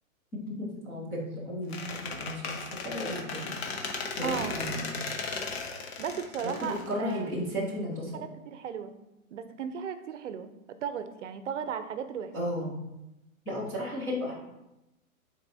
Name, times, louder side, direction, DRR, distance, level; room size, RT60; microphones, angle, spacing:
voice 1, 0.5-3.5 4.2-4.8 6.4-8.2 12.3-12.7 13.5-14.3, equal, 5° left, -8 dB, 0.4 m, -34 dB
Squeak, 1.7-7.5, left 4 dB, 45° left, 1.0 m, -36 dB
voice 2, 4.2-4.6 6.0-7.3 8.1-8.9 9.3-12.3, right 7 dB, 60° right, 10 dB, 0.7 m, -36 dB
8.3 x 4.2 x 2.7 m, 0.92 s
hypercardioid pair, 150°, 42 cm